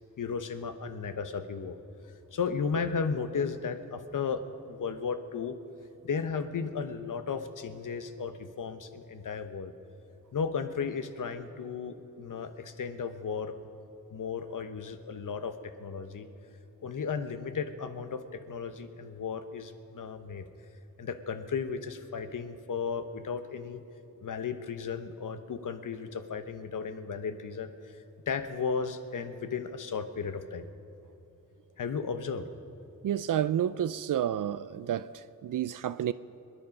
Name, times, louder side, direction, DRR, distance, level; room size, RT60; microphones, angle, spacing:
voice 1, 0.2-1.8 2.3-5.5 6.0-9.7 10.3-13.6 14.1-16.3 16.8-18.2 18.5-20.5 21.0-23.8 24.2-28.0 28.3-30.6 31.8-32.5, left 5 dB, 65° left, 1.0 m, -34 dB
voice 2, 33.0-36.1, right 10 dB, 70° right, 0.4 m, -30 dB
26.0 x 10.0 x 5.3 m
wide cardioid pair, 115°, 33 cm